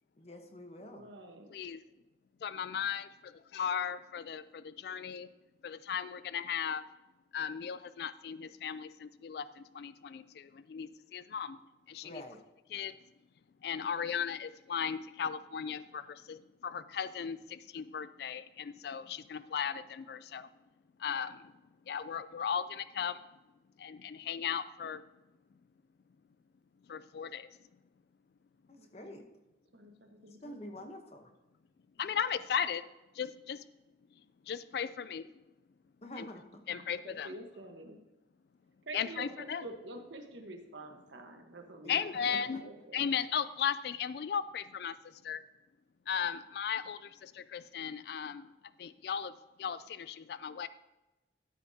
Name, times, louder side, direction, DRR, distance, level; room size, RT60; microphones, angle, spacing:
voice 1, 0.2-1.0 12.0-12.4 28.7-29.2 30.4-31.3 36.0-36.6 41.8-42.0 42.3-42.4, left 1 dB, 35° left, 5 dB, 1.0 m, -47 dB
voice 2, 0.8-1.5 28.8-29.1 29.7-30.9 36.7-38.0 38.8-43.0, right 2 dB, 85° right, 4 dB, 1.3 m, -48 dB
voice 3, 2.4-5.3 5.6-6.8 7.3-11.6 11.9-12.2 12.7-13.0 13.6-20.5 21.0-21.5 21.9-23.2 23.8-25.0 26.9-27.5 32.0-32.9 33.1-33.6 34.5-35.3 36.2-36.3 36.7-37.3 38.9-39.6 41.9-45.4 46.1-48.5 48.8-49.3 49.6-50.7, left 7 dB, 60° left, 15 dB, 0.3 m, -36 dB
13.0 x 8.2 x 2.8 m, 1.0 s
head